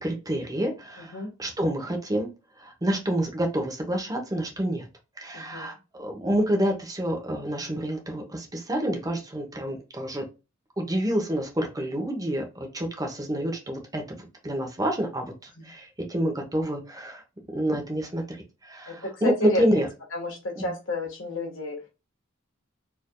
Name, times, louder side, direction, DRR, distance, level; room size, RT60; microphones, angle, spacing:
voice 1, 0.0-2.3 2.6-4.9 5.2-10.2 10.8-17.2 17.5-18.2 18.6-19.9 20.6-20.7, equal, 20° right, 2 dB, 1.0 m, -28 dB
voice 2, 1.0-1.3 5.3-5.8 18.9-19.6 20.1-21.8, left 1 dB, 65° left, 0 dB, 1.7 m, -31 dB
4.4 x 3.4 x 2.3 m, 0.28 s
head